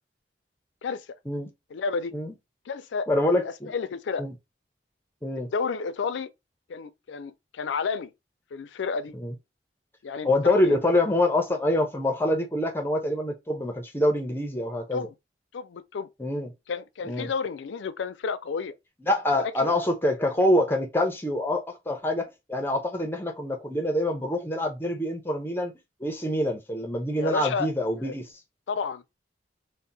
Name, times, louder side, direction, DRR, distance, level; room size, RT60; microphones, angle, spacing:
voice 1, 1.7-2.1 2.7-4.3 5.4-6.3 6.7-8.1 8.5-9.1 10.0-10.3 10.5-10.8 14.9-15.1 15.5-16.1 16.7-18.8 19.3-19.7 27.1-27.7 28.0-28.1 28.7-29.1, left 5 dB, 90° left, 0.4 m, -31 dB
voice 2, 3.1-3.7 4.2-4.3 5.2-5.5 9.2-9.3 10.2-15.1 16.2-16.5 17.1-17.3 19.1-25.7 26.0-28.2, left 1 dB, 10° left, 0.5 m, -25 dB
2.8 x 2.0 x 3.8 m
head